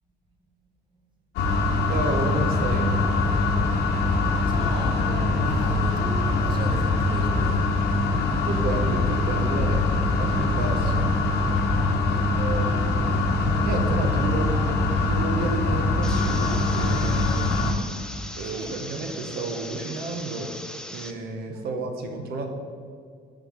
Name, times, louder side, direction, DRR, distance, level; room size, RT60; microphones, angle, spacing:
sound 1, 1.4-17.7, left 2 dB, 80° left, 1.0 m, -23 dB
voice 1, 1.9-2.9 8.3-11.1 12.3-13.2 13.6-17.3 18.3-20.5 20.9-22.5, right 3 dB, 70° right, 4 dB, 0.9 m, -31 dB
voice 2, 4.4-7.7 12.0-12.5 14.2-14.4 18.5-18.8 21.5-21.7, right 2 dB, 30° right, 3 dB, 0.9 m, -38 dB
sound 2, 16.0-21.1, left 1 dB, 5° left, 0.5 m, -39 dB
6.8 x 3.8 x 6.1 m, 2.2 s
cardioid pair, 110°, 17 cm